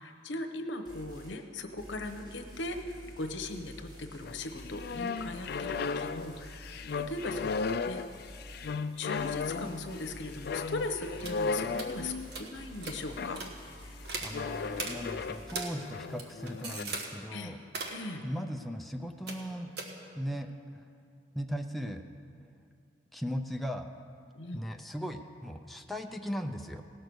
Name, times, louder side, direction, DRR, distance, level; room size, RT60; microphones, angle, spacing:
voice 1, 0.0-8.0 8.7-13.4 17.3-17.5 17.9-18.2 24.3-24.6, left 2 dB, 85° left, 6 dB, 0.9 m, -39 dB
sound 1, 0.9-1.4 1.8-8.8 9.2-15.6, equal, 25° right, 3.3 m, -49 dB
sound 2, 4.2-12.4 13.2-13.5 14.3-15.5 15.8-16.8, left 4 dB, 60° left, 0.4 m, -35 dB
sound 3, 11.2-11.4 11.7-11.9 12.3-12.5 12.8-13.0 13.3-13.5 14.0-14.3 14.7-14.9 15.5-15.7 16.0-17.1 17.6-18.0 19.3-19.5 19.8-19.9, right 3 dB, 60° right, 1.3 m, -38 dB
voice 2, 14.2-17.6 18.2-19.7 20.1-20.8 21.3-22.0 23.1-23.9 24.5-26.8, equal, ahead, 3 dB, 0.5 m, -38 dB
18.0 x 6.7 x 6.2 m, 2.4 s
head